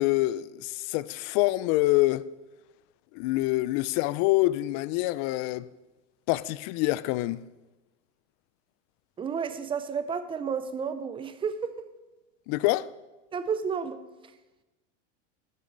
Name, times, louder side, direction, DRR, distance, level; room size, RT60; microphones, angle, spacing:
voice 1, 0.0-2.3 3.1-5.7 6.3-7.4 12.5-12.9, left 18 dB, 45° left, 0.4 m, -26 dB
voice 2, 9.2-11.9 13.3-14.0, right 6 dB, 15° right, 0.5 m, -31 dB
12.0 x 11.5 x 3.9 m
supercardioid pair, 135°, 38 cm